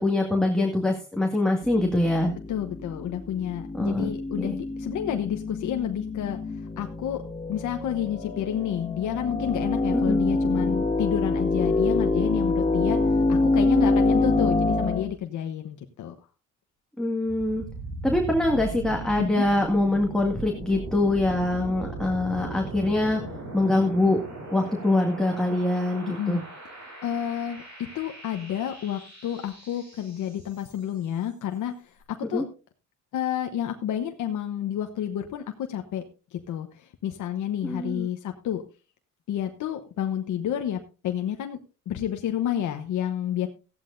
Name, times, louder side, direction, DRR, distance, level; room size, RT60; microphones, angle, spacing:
voice 1, 0.0-2.3 3.7-4.1 4.4-4.5 9.9-10.2 17.0-17.6 18.0-23.2 23.5-24.2 24.5-26.4 32.3-32.4 37.6-38.1, left 2 dB, ahead, 0 dB, 2.0 m, -24 dB
sound 1, 1.6-15.1, left 2 dB, 20° left, 1.6 m, -26 dB
voice 2, 2.5-6.4 6.8-16.1 19.2-19.5 26.1-26.4 27.0-32.4 33.1-36.0 36.3-38.6 39.3-41.6 41.9-43.5, left 10 dB, 75° left, 5 dB, 1.1 m, -30 dB
sound 2, 17.3-31.1, right 2 dB, 65° right, 6.8 m, -39 dB
15.0 x 11.5 x 2.6 m, 0.33 s
cardioid pair, 90°, 30 cm